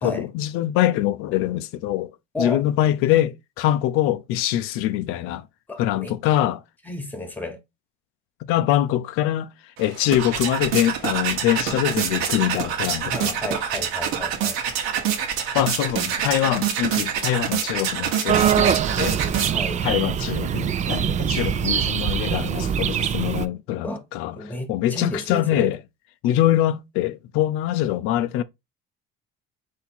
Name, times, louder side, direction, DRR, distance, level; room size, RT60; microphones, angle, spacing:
voice 1, 0.0-2.1 2.4-5.5 5.8-6.6 8.5-9.5 9.8-13.4 15.5-19.2 19.8-25.8 26.2-28.4, left 13 dB, 90° left, 0.5 m, -23 dB
voice 2, 5.7-6.1 6.8-7.6 13.1-14.5 19.5-19.8 23.8-24.0 24.3-25.7, left 1 dB, 10° left, 1.1 m, -32 dB
sound 1, 9.8-19.8, right 8 dB, 85° right, 1.1 m, -26 dB
sound 2, 18.3-23.5, right 8 dB, 35° right, 0.4 m, -23 dB
4.1 x 2.7 x 4.3 m
cardioid pair, 125°, 21 cm